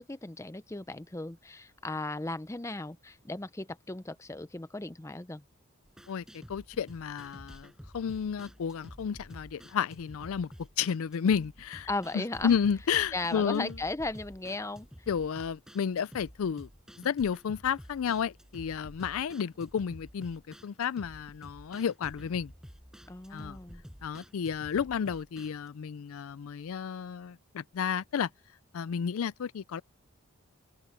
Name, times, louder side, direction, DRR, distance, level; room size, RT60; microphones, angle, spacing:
voice 1, 0.0-5.4 11.9-12.6 13.1-14.9 23.1-23.8, left 2 dB, 15° left, 0.5 m, -36 dB
sound 1, 5.9-25.7, equal, 5° right, 6.8 m, -51 dB
voice 2, 6.1-10.5 10.8-11.9 12.1-13.7 15.1-16.7 17.0-22.5 23.3-23.6 24.0-28.3 28.7-29.8, left 7 dB, 70° left, 0.4 m, -32 dB
head